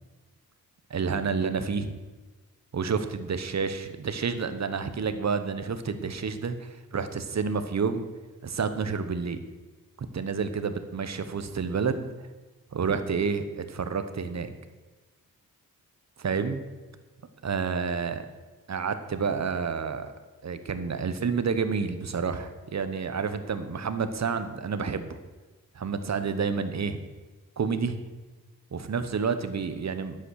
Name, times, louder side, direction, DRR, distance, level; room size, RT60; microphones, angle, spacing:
voice 1, 0.9-2.0 2.7-8.1 8.4-9.4 10.1-12.1 12.7-14.5 16.2-16.6 17.4-18.2 18.7-20.1 20.4-25.2 25.7-27.0 27.6-28.0 28.7-30.2, right 5 dB, 50° right, 10 dB, 1.0 m, -29 dB
11.0 x 8.2 x 6.4 m, 1.3 s
wide cardioid pair, 125°, 36 cm